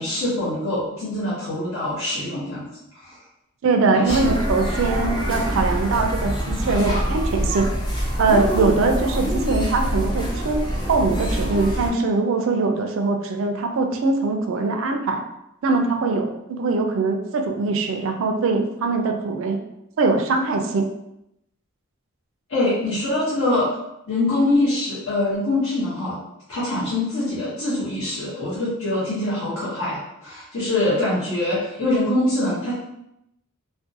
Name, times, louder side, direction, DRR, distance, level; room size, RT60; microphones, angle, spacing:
voice 1, 0.0-2.7 3.0-3.2 3.9-4.2 22.5-23.7 24.1-26.2 26.5-32.7, left 2 dB, 65° left, -11 dB, 0.9 m, -24 dB
voice 2, 3.6-7.7 8.2-15.2 15.6-19.6 20.0-20.9, right 3 dB, 60° right, 4 dB, 0.3 m, -22 dB
sound 1, 4.1-11.9, equal, 20° left, 0.4 m, -25 dB
2.5 x 2.2 x 2.6 m, 0.83 s
head